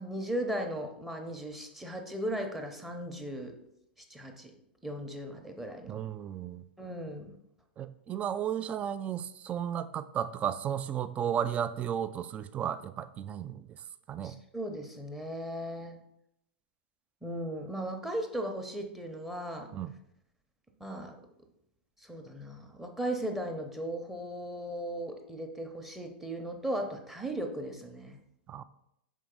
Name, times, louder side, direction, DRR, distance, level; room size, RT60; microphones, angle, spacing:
voice 1, 0.0-3.5 4.1-4.5 4.8-6.0 6.8-7.3 14.2-16.0 17.2-19.7 20.8-21.2 22.0-28.2, right 1 dB, 5° right, 3 dB, 0.8 m, -37 dB
voice 2, 5.9-6.6 7.8-13.7 14.1-14.4 19.7-19.9 28.5-28.6, right 9 dB, 20° right, 14 dB, 0.3 m, -34 dB
6.3 x 4.6 x 3.7 m, 0.80 s
figure-of-eight pair, 95°, 6 cm